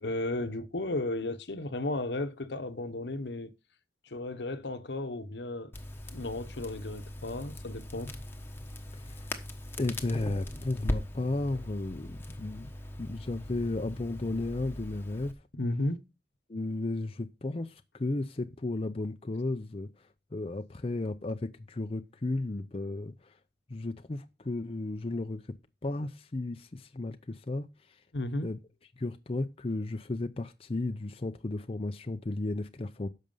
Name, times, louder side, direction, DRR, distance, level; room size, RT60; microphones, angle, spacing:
voice 1, 0.0-3.5 4.1-5.7 6.1-8.1 15.5-16.0 28.1-28.5, left 2 dB, 75° left, 1.0 m, -34 dB
Crackle, 5.7-15.3, left 1 dB, 15° left, 1.1 m, -40 dB
voice 2, 9.8-12.7 13.0-15.3 16.5-19.9 20.3-23.3 23.7-25.6 25.8-28.0 28.4-28.6 29.0-33.1, left 2 dB, 35° left, 0.5 m, -34 dB
10.5 x 6.5 x 5.5 m
head